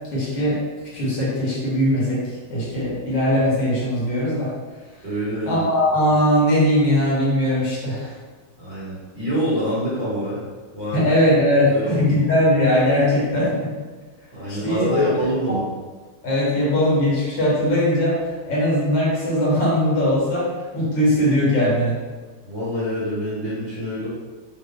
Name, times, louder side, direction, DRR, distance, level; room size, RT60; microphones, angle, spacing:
voice 1, 0.1-0.6 0.9-2.2 2.5-4.5 5.4-8.1 10.9-13.7 14.5-14.8 15.5-15.6 16.2-18.2 18.5-22.0, equal, 70° left, -6 dB, 1.6 m, -20 dB
voice 2, 5.0-5.6 8.6-10.4 10.7-11.1 11.7-12.0 14.3-15.7 22.4-24.1, equal, 10° left, -12 dB, 0.9 m, -25 dB
3.6 x 2.1 x 3.5 m, 1.4 s
omnidirectional pair, 2.1 m